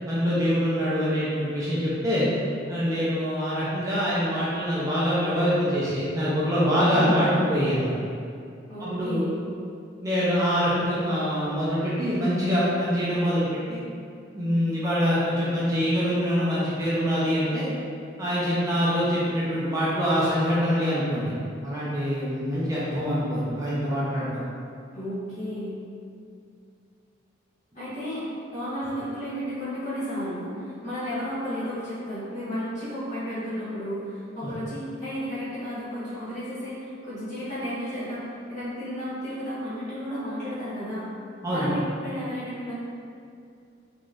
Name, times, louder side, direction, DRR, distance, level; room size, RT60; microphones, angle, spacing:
voice 1, 0.1-2.3 2.7-7.9 8.8-9.3 10.0-13.8 14.3-17.7 18.2-21.3 21.6-24.4 34.4-34.5 41.4-41.7, equal, 20° right, -9 dB, 0.6 m, -24 dB
voice 2, 6.9-7.3 8.7-9.4 24.9-25.8 27.7-28.3 28.5-41.1 41.5-42.7, equal, 40° left, -13 dB, 1.3 m, -33 dB
3.9 x 2.9 x 2.5 m, 2.4 s
head